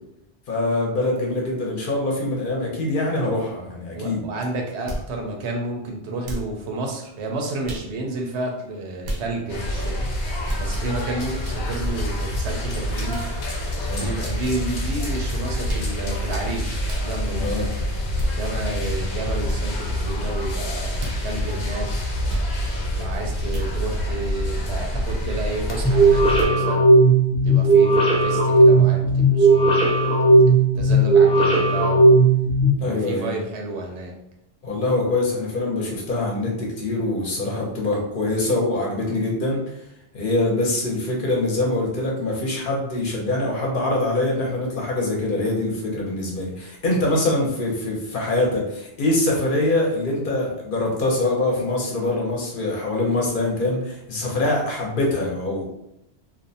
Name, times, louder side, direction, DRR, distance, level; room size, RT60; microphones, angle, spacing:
voice 1, 0.5-4.3 13.9-14.2 17.4-17.7 32.8-33.3 34.6-39.6 40.1-55.7, left 2 dB, 55° left, -1 dB, 0.8 m, -24 dB
voice 2, 3.9-10.1 10.6-13.3 13.9-17.6 18.3-21.9 22.9-26.8 27.4-30.4 30.7-32.2 32.8-34.1, right 2 dB, 80° right, 1 dB, 0.9 m, -31 dB
sound 1, 4.9-5.1 6.2-6.5 7.6-7.9 9.0-9.3 10.4-10.7 11.8-12.0 13.1-13.3 14.4-14.6 15.6-15.9 16.8-17.1 18.2-18.3 19.4-19.6 21.0-21.2 22.3-22.5 23.5-23.7, equal, 50° right, 0.6 m, -30 dB
sound 2, 9.5-26.5, equal, 85° left, 0.9 m, -27 dB
sound 3, 25.8-32.7, right 2 dB, 10° left, 0.4 m, -16 dB
2.5 x 2.1 x 2.6 m, 0.81 s
omnidirectional pair, 1.1 m